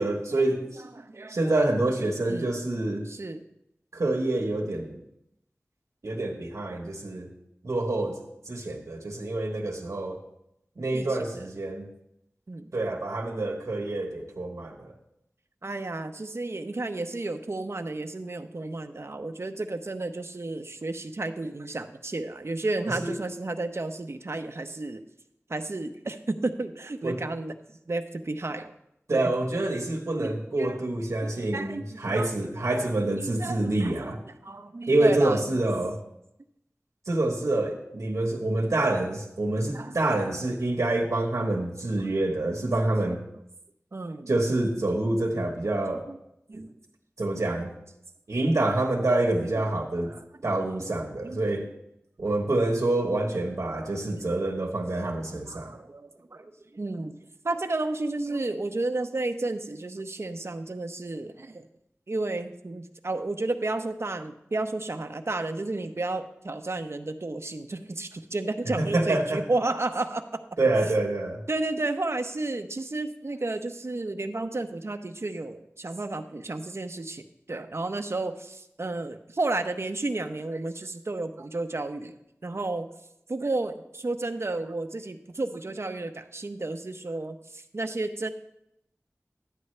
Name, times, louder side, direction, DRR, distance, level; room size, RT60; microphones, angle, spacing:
voice 1, 0.0-0.8 1.3-3.1 3.9-5.0 6.0-7.3 7.6-10.2 10.8-11.9 12.7-14.9 22.9-23.1 27.0-27.2 29.1-34.2 34.9-36.0 37.1-43.2 44.3-46.1 47.2-47.7 48.3-50.1 50.4-51.7 52.2-55.7 68.8-69.4 70.6-71.4, right 2 dB, 85° right, 0 dB, 1.2 m, -27 dB
voice 2, 1.0-1.5 2.3-2.6 3.1-3.4 10.9-11.5 12.5-12.7 15.6-25.0 25.5-28.7 29.1-29.3 30.2-30.8 31.2-32.3 32.6-35.6 39.7-40.3 43.9-44.3 46.1-46.2 46.5-46.7 49.5-49.6 50.0-50.2 51.2-51.4 53.8-54.3 55.5-57.2 57.4-61.7 62.1-70.4 71.5-82.2 82.4-82.9 83.3-88.3, right 2 dB, 60° right, 8 dB, 0.8 m, -32 dB
12.0 x 9.4 x 3.3 m, 0.81 s
wide cardioid pair, 45°, 5 cm